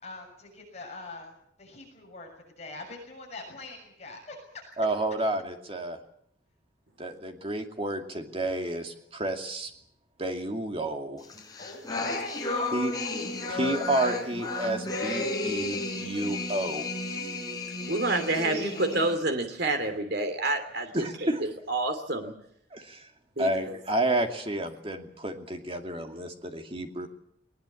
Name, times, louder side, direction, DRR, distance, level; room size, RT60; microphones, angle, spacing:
voice 1, 0.0-1.3 1.6-2.3 2.6-4.4 4.8-4.9 11.6-13.3 18.0-18.1 18.4-19.0, left 3 dB, 35° left, 1 dB, 7.0 m, -43 dB
voice 2, 4.8-6.0 7.0-9.7 10.2-11.2 12.7-12.9 13.5-16.9 20.9-21.4 22.7-23.1 23.4-27.1, right 1 dB, 30° right, 4 dB, 2.5 m, -30 dB
sound 1, 11.3-19.2, left 2 dB, 20° left, 4.5 m, -33 dB
voice 3, 17.9-21.3 21.7-22.3 23.4-23.5, right 2 dB, 60° right, 7 dB, 2.9 m, -28 dB
20.5 x 20.0 x 8.6 m, 0.70 s
head